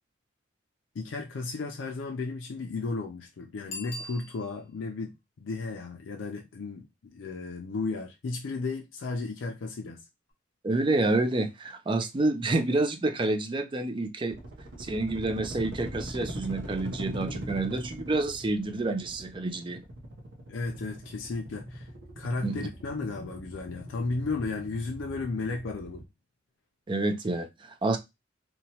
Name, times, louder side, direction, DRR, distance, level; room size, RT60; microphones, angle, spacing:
voice 1, 0.9-10.0 20.5-21.9 22.2-26.0, left 3 dB, 75° left, 0.4 m, -34 dB
Bicycle bell, 3.7-4.9 10.3-10.4, left 2 dB, 35° left, 0.8 m, -41 dB
voice 2, 10.6-14.4 14.8-19.8 22.4-22.6 26.9-28.0, right 2 dB, 25° right, 0.4 m, -28 dB
sound 1, 14.3-26.0, right 1 dB, 65° right, 0.7 m, -41 dB
2.9 x 2.2 x 2.7 m
head